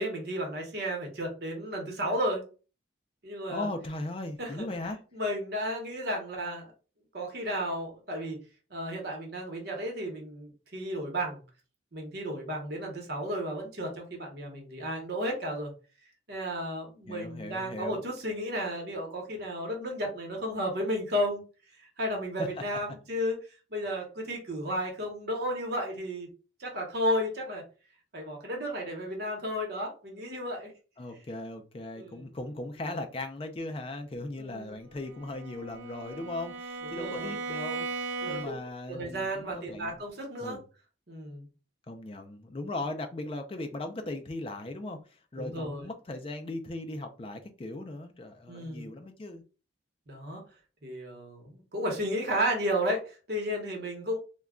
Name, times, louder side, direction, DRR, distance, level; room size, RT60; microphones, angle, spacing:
voice 1, 0.0-2.4 3.2-3.7 4.4-6.7 7.1-8.4 8.7-11.4 11.9-15.7 16.3-21.4 21.8-23.4 23.7-26.3 26.6-27.6 28.1-30.7 32.0-32.3 34.4-34.8 36.8-37.4 38.2-38.6 38.9-40.6 41.1-41.5 45.4-45.9 48.5-48.9 50.1-50.4 50.8-54.2, equal, 55° right, 1 dB, 0.9 m, -33 dB
voice 2, 3.5-5.0 17.1-18.0 22.4-22.5 31.0-40.0 40.4-40.6 41.9-49.4, left 2 dB, 30° left, 6 dB, 0.4 m, -38 dB
Bowed string instrument, 35.0-38.8, right 3 dB, 75° right, 0.5 m, -37 dB
2.2 x 2.2 x 3.6 m, 0.35 s
head